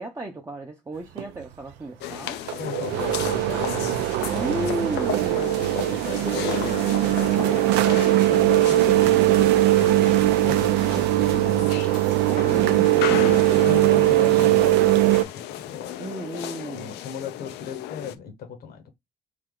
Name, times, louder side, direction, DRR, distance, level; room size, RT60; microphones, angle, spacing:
voice 1, 0.0-2.4 4.3-5.8 12.5-13.7 16.0-17.0, right 1 dB, 15° right, 0.6 m, -34 dB
sound 1, 1.2-1.3 2.1-2.2 2.5-15.2, right 16 dB, 85° right, 0.4 m, -20 dB
sound 2, 2.0-18.2, left 12 dB, 80° left, 0.5 m, -34 dB
voice 2, 2.6-4.9 5.9-6.7 7.0-7.6 8.2-9.2 9.8-13.2 13.6-15.9 16.7-18.9, left 7 dB, 65° left, 1.0 m, -38 dB
3.3 x 2.8 x 3.7 m
cardioid pair, 110°, 17 cm